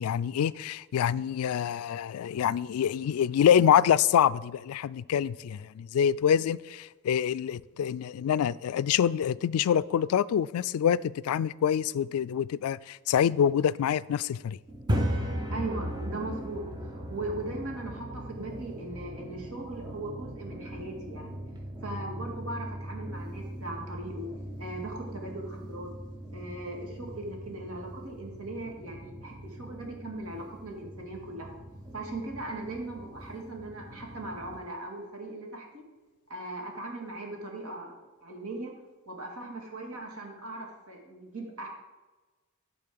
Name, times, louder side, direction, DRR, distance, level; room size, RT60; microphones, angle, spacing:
voice 1, 0.0-14.6, left 9 dB, 75° left, 0.3 m, -26 dB
sound 1, 14.7-34.6, equal, 20° right, 0.9 m, -38 dB
voice 2, 15.5-21.4 21.8-24.3 24.6-25.9 26.3-31.5 31.9-35.8 36.3-37.9 38.2-38.8 39.1-41.7, right 2 dB, 75° right, 2.2 m, -39 dB
11.5 x 4.1 x 7.5 m
head